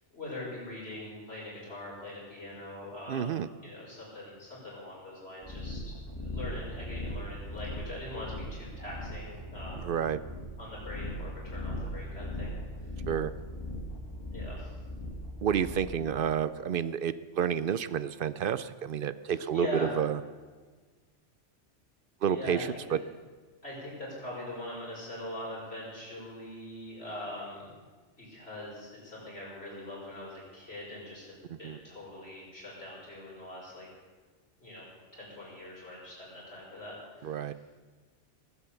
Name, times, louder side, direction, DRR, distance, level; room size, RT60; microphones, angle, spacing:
voice 1, 0.1-9.9 10.6-12.5 14.3-14.7 19.3-19.9 22.2-23.0 23.6-27.7 28.2-33.9 34.6-34.8 35.1-37.6, left 1 dB, 55° left, -6 dB, 6.1 m, -42 dB
voice 2, 3.1-3.5 9.8-10.2 13.1-13.3 15.4-20.2 22.2-23.0 31.5-31.8 37.2-37.5, right 8 dB, 60° right, 15 dB, 0.6 m, -30 dB
sound 1, 5.4-16.0, left 1 dB, 20° left, 1.6 m, -39 dB
sound 2, 6.1-7.9 8.4-12.5 13.1-16.3, right 1 dB, 80° right, 4.2 m, -49 dB
19.5 x 8.3 x 7.0 m, 1.4 s
omnidirectional pair, 1.2 m